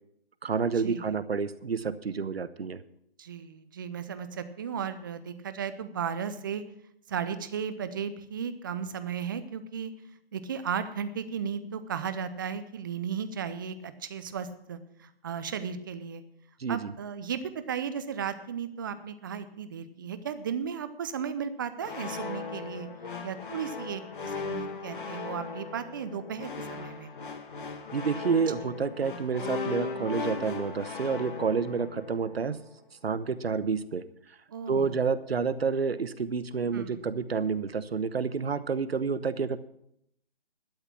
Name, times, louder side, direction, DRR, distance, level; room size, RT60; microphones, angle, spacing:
voice 1, 0.4-2.8 16.6-16.9 27.9-32.6 33.0-34.0 34.7-39.6, right 5 dB, 80° right, 15 dB, 1.1 m, -29 dB
voice 2, 3.2-6.6 7.1-9.9 10.3-16.2 16.7-22.9 23.2-27.1 34.5-35.0 36.7-37.0, right 7 dB, 20° right, 11 dB, 0.6 m, -35 dB
sound 1, 21.8-32.7, left 4 dB, 55° left, 1.8 m, -38 dB
12.0 x 8.2 x 7.2 m, 0.73 s
figure-of-eight pair, 155°, 30 cm